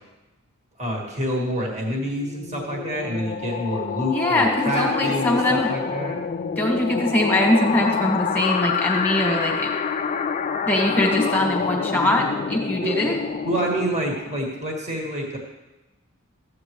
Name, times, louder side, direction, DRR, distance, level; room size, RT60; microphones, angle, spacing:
voice 1, 0.8-6.2 12.8-13.0 13.4-15.4, equal, 30° right, -2 dB, 1.6 m, -27 dB
sound 1, 2.1-14.5, left 6 dB, 35° left, 0.3 m, -27 dB
voice 2, 4.1-5.7 6.6-9.7 10.6-13.2, left 1 dB, 10° left, 0 dB, 1.6 m, -22 dB
13.5 x 8.1 x 3.1 m, 1.1 s
head